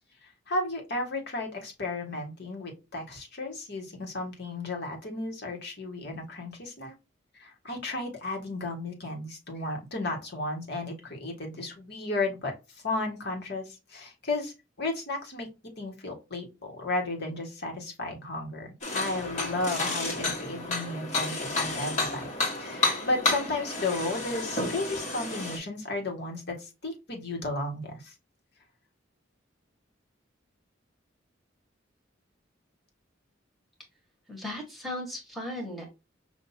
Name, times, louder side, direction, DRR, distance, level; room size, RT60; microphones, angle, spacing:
voice 1, 0.2-6.9 7.3-15.5 15.8-18.7 18.9-28.1, left 2 dB, 55° left, 1 dB, 1.5 m, -34 dB
sound 1, 18.8-25.6, left 2 dB, 40° left, 1.5 m, -31 dB
voice 2, 34.3-35.9, left 1 dB, ahead, -1 dB, 1.4 m, -36 dB
5.7 x 2.7 x 2.6 m, 0.26 s
head